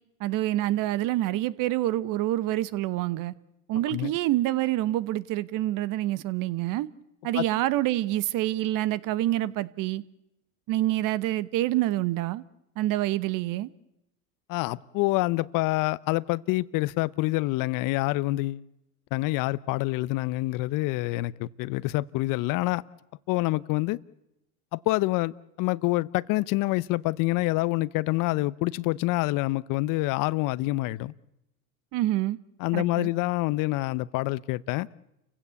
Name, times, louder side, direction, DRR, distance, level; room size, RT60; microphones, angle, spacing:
voice 1, 0.2-3.3 3.7-6.9 7.2-10.0 10.7-12.4 12.8-13.7 31.9-32.4 32.7-33.1, right 15 dB, 45° right, 1.1 m, -27 dB
voice 2, 14.5-18.7 19.1-22.8 23.3-24.0 24.7-31.1 32.6-34.9, left 20 dB, 50° left, 0.8 m, -27 dB
30.0 x 16.0 x 8.3 m
supercardioid pair, 110°, 43 cm